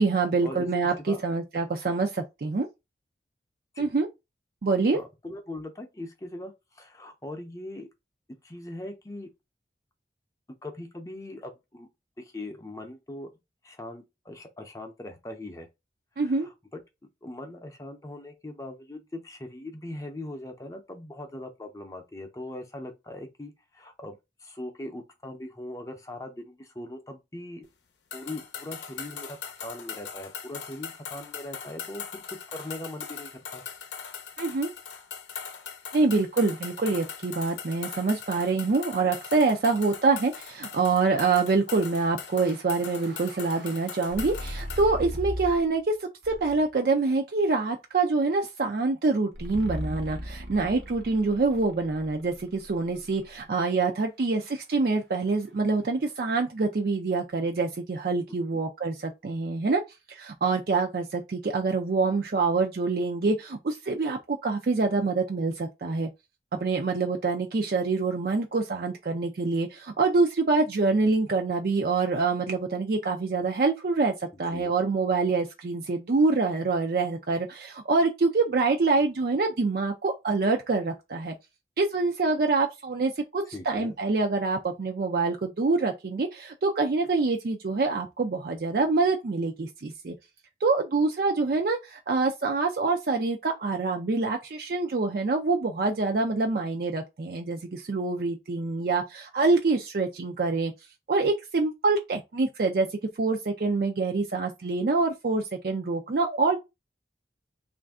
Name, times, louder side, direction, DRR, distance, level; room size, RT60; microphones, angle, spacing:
voice 1, 0.0-2.7 3.8-4.1 4.6-5.0 16.2-16.5 34.4-34.7 35.9-59.8 60.1-66.1 66.6-81.3 81.8-90.1 90.6-100.7 101.1-102.9 103.2-106.6, right 3 dB, 55° right, 0.4 m, -26 dB
voice 2, 4.9-7.9 8.4-9.3 10.6-11.9 12.2-13.3 13.6-15.7 16.2-16.8 17.2-27.7 28.1-33.6 58.5-58.6 74.5-74.7 83.5-84.0, left 1 dB, 20° left, 0.6 m, -40 dB
sound 1, 28.1-44.9, left 7 dB, 80° left, 0.6 m, -40 dB
sound 2, 42.4-45.8 46.2-46.8 49.3-53.4, equal, 75° right, 0.9 m, -39 dB
3.2 x 2.5 x 3.5 m
head